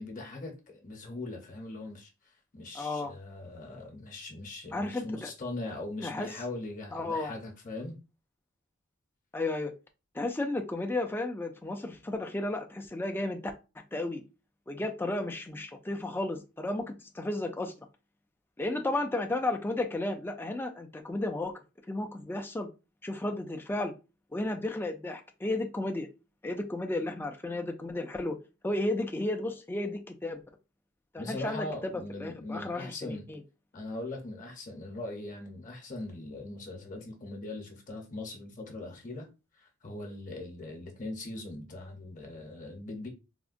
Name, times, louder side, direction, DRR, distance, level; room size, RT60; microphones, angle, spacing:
voice 1, 0.0-2.1 2.5-8.0 31.2-33.3 33.7-39.3 39.6-43.1, left 2 dB, 40° left, 0.7 m, -40 dB
voice 2, 2.7-3.1 4.7-5.3 6.0-6.3 6.9-7.3 9.3-9.7 10.1-13.4 13.9-14.2 14.7-17.7 18.6-21.6 21.9-22.7 23.0-23.9 24.3-26.1 26.4-28.4 28.6-30.4 31.1-33.4, left 2 dB, 10° left, 0.3 m, -33 dB
3.5 x 2.1 x 2.5 m
head